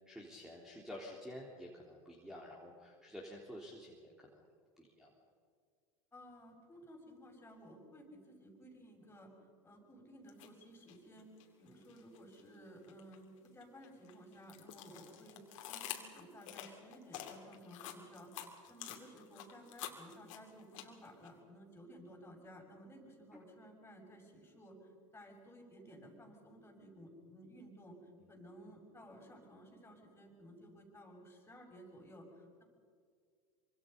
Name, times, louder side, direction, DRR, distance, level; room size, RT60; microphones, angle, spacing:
voice 1, 0.1-4.5 4.8-5.1 23.3-23.4 28.2-28.3, left 1 dB, 5° right, -2 dB, 3.7 m, -50 dB
voice 2, 6.1-9.3 9.6-11.3 11.6-15.4 15.7-28.0 28.3-32.6, equal, 15° left, 1 dB, 6.6 m, -56 dB
sound 1, 10.3-10.5 10.9-12.4 12.8-21.3, left 12 dB, 70° left, 3.0 m, -48 dB
25.5 x 25.5 x 5.5 m, 2.1 s
hypercardioid pair, 90°, 17 cm